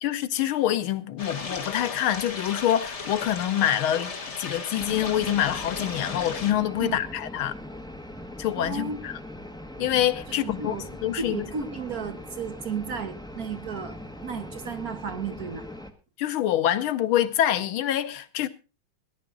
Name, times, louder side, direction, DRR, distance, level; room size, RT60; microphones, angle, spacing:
voice 1, 0.0-7.5 8.4-9.1 9.8-10.8 11.0-11.4 16.2-18.5, left 11 dB, 80° left, 1.7 m, -26 dB
sound 1, 1.2-6.5, left 4 dB, 35° left, 2.0 m, -36 dB
sound 2, 4.8-15.9, left 1 dB, 5° left, 0.8 m, -41 dB
voice 2, 8.6-9.0 10.4-10.9 11.2-15.6, right 6 dB, 50° right, 1.4 m, -34 dB
18.5 x 10.5 x 3.8 m
omnidirectional pair, 2.3 m